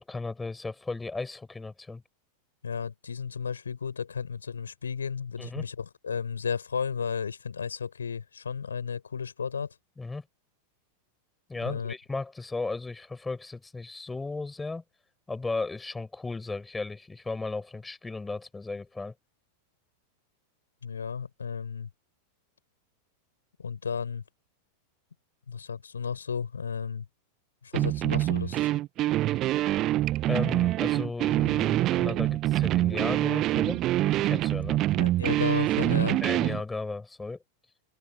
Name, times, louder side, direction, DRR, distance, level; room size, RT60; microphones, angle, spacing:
voice 1, 0.0-2.0 5.4-5.6 10.0-10.2 11.5-14.8 15.3-19.1 29.3-29.4 30.3-33.8 34.1-34.8 36.2-37.4, left 3 dB, 10° left, 7.7 m, -35 dB
voice 2, 2.6-9.7 11.6-11.9 20.8-21.9 23.6-24.2 25.5-27.0 27.6-28.7 34.9-36.2, left 6 dB, 70° left, 6.7 m, -33 dB
sound 1, 27.7-36.6, right 15 dB, 35° right, 0.9 m, -25 dB
figure-of-eight pair, 90°, 0 cm